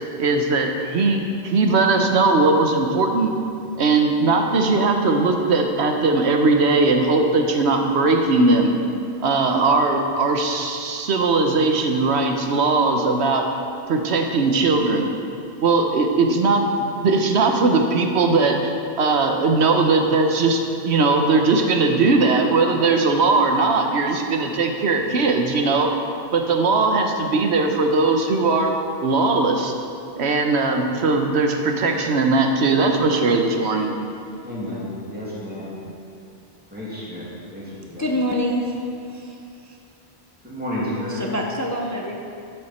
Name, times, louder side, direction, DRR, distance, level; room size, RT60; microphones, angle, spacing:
voice 1, 0.2-3.3 3.8-8.7 9.2-13.5 13.9-15.1 15.6-25.9 26.3-28.8 29.0-29.7 30.2-33.9, right 3 dB, 70° right, 4 dB, 1.2 m, -19 dB
voice 2, 34.4-35.8 36.7-38.1 40.4-41.2, left 1 dB, 10° right, -7 dB, 2.4 m, -31 dB
voice 3, 38.0-39.8 41.1-42.2, equal, 20° left, 0 dB, 0.6 m, -26 dB
11.5 x 7.8 x 4.3 m, 2.6 s
omnidirectional pair, 1.2 m